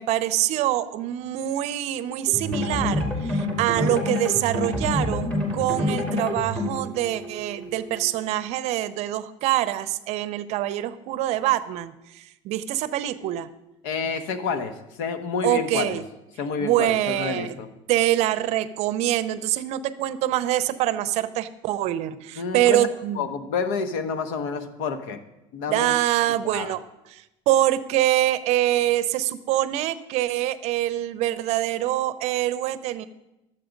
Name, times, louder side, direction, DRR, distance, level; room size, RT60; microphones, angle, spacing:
voice 1, 0.0-13.5 15.4-16.0 16.6-17.6 17.9-23.2 25.7-26.8 27.1-33.1, right 13 dB, 55° right, 14 dB, 0.6 m, -25 dB
sound 1, 2.3-8.1, left 1 dB, 10° left, 2.1 m, -27 dB
voice 2, 13.8-16.0 16.4-17.7 22.4-22.9 23.1-25.2 25.5-26.0 26.4-26.7, left 5 dB, 75° left, 10 dB, 1.1 m, -29 dB
12.0 x 7.6 x 5.1 m, 0.94 s
cardioid pair, 145°, 14 cm